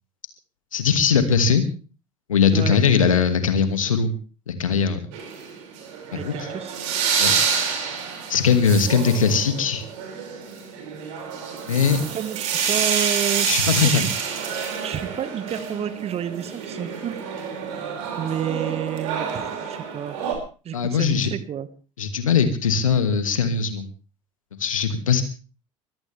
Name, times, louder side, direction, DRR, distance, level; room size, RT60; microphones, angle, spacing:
voice 1, 0.7-1.6 2.3-4.1 4.5-5.0 6.1-6.3 7.2-7.3 8.3-9.9 11.7-12.0 13.5-14.1 20.7-21.3 22.0-23.9 24.6-25.2, left 6 dB, 80° left, 9 dB, 2.4 m, -20 dB
sound 1, 5.1-20.3, right 6 dB, 60° right, 6.2 m, -28 dB
voice 2, 6.1-6.8 12.1-13.5 13.8-14.1 14.8-17.2 18.2-20.2 20.7-21.7, right 9 dB, 35° right, 13 dB, 1.8 m, -30 dB
23.5 x 17.0 x 3.5 m, 0.37 s
figure-of-eight pair, 70°, 17 cm